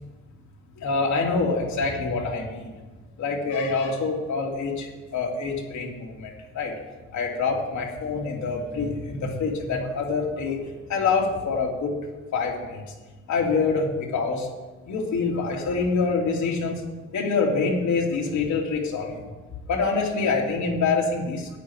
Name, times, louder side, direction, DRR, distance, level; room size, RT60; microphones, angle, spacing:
voice 1, 0.8-2.8 3.2-6.7 7.1-10.6 10.9-12.0 12.3-12.8 13.3-14.5 14.8-16.8 17.1-19.3 19.7-21.6, left 4 dB, 70° left, -1 dB, 3.1 m, -26 dB
15.5 x 9.2 x 4.8 m, 1.2 s
cardioid pair, 90°, 30 cm